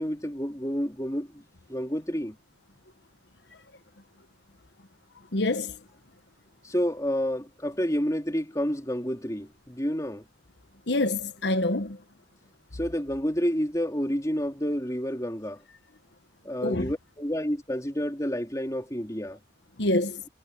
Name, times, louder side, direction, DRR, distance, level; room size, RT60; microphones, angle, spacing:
voice 1, 0.0-1.4 1.7-2.4 6.6-10.2 12.7-15.6 16.4-19.4, equal, 20° left, 3.6 m, -29 dB
voice 2, 5.3-5.8 10.9-12.0 16.6-16.9 19.8-20.2, left 2 dB, 75° left, 1.2 m, -26 dB
head